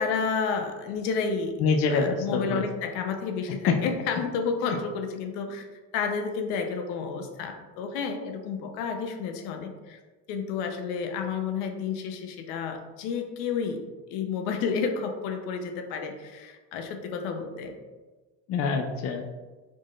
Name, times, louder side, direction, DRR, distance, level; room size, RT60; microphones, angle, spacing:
voice 1, 0.0-1.6 1.9-5.7 5.9-10.0 10.3-13.8 14.1-17.8, left 5 dB, 80° left, 5 dB, 0.8 m, -31 dB
voice 2, 1.6-2.7 3.5-3.8 18.5-19.2, left 5 dB, 40° left, 4 dB, 0.4 m, -25 dB
4.5 x 4.4 x 2.4 m, 1.3 s
cardioid pair, 140°, 37 cm